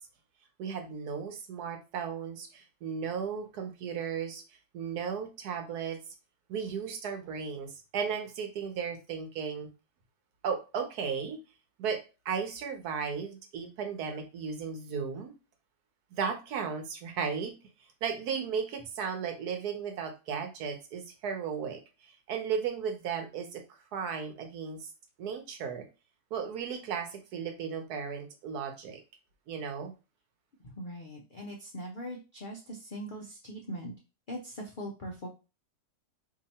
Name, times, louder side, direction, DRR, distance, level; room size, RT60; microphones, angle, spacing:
voice 1, 0.6-4.4 4.7-6.0 6.5-9.7 10.4-11.4 11.8-15.3 16.1-17.5 18.0-21.8 22.3-23.6 23.9-24.9 25.2-25.9 26.3-29.0 29.5-29.9, right 6 dB, 75° right, 5 dB, 1.3 m, -35 dB
voice 2, 30.6-33.9 34.3-35.3, equal, 65° left, 0 dB, 0.5 m, -41 dB
2.9 x 2.7 x 4.0 m, 0.30 s
omnidirectional pair, 1.7 m